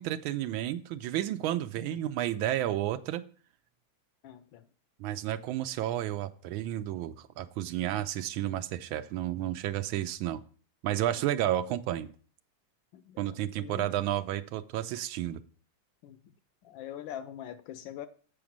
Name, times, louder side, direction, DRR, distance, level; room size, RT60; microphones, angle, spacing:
voice 1, 0.0-3.2 5.0-10.4 10.8-12.1 13.2-15.4, right 12 dB, 85° right, 1.4 m, -31 dB
voice 2, 1.8-2.1 4.2-4.7 7.8-8.1 11.0-11.2 12.9-13.9 16.0-16.2 16.6-18.1, left 11 dB, 75° left, 1.3 m, -44 dB
7.8 x 5.0 x 7.2 m
omnidirectional pair, 2.2 m